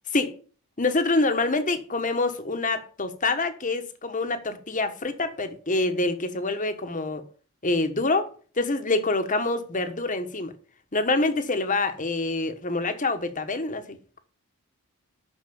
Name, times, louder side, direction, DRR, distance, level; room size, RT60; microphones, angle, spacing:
voice 1, 0.8-7.2 7.6-8.3 8.6-10.5 10.9-14.2, left 2 dB, 35° left, 1.3 m, -26 dB
9.3 x 6.5 x 7.0 m
head